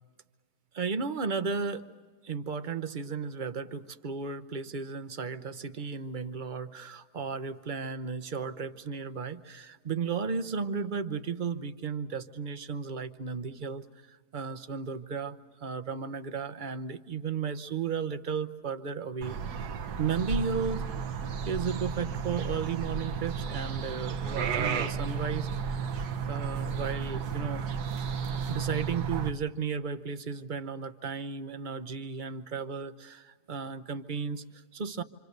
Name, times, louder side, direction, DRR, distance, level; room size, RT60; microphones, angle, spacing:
voice 1, 0.7-1.9 2.2-20.9 21.4-26.0 26.3-27.6 28.5-35.0, right 5 dB, 40° right, 11 dB, 0.8 m, -34 dB
sound 1, 19.2-29.3, right 6 dB, 80° right, 1.5 m, -33 dB
27.0 x 27.0 x 6.7 m, 1.5 s
omnidirectional pair, 1.7 m